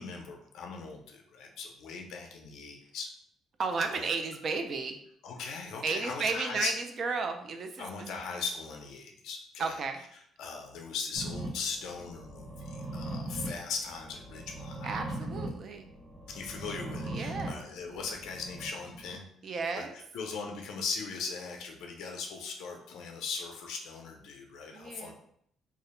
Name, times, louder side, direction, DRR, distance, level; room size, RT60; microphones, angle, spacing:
voice 1, 0.0-3.1 3.9-4.1 5.2-6.7 7.8-9.7 10.4-14.9 16.3-19.2 19.7-19.9 20.1-25.1, left 5 dB, 80° left, 2 dB, 0.4 m, -39 dB
voice 2, 3.6-5.0 5.8-7.9 9.6-10.0 14.8-15.9 17.1-17.6 19.4-20.0 24.7-25.1, right 4 dB, 45° right, 6 dB, 0.3 m, -33 dB
sound 1, 11.2-19.1, right 1 dB, 70° right, 0.9 m, -40 dB
2.3 x 2.0 x 2.9 m, 0.68 s
cardioid pair, 145°, 0 cm